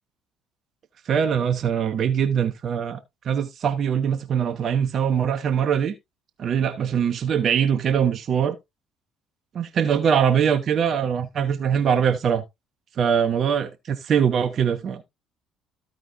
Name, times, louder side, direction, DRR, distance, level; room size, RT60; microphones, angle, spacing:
voice 1, 1.0-3.0 3.2-5.9 6.4-8.6 9.5-12.4 13.0-15.0, right 7 dB, 45° right, 0.8 m, -22 dB
14.0 x 4.9 x 2.7 m
figure-of-eight pair, 50°, 0 cm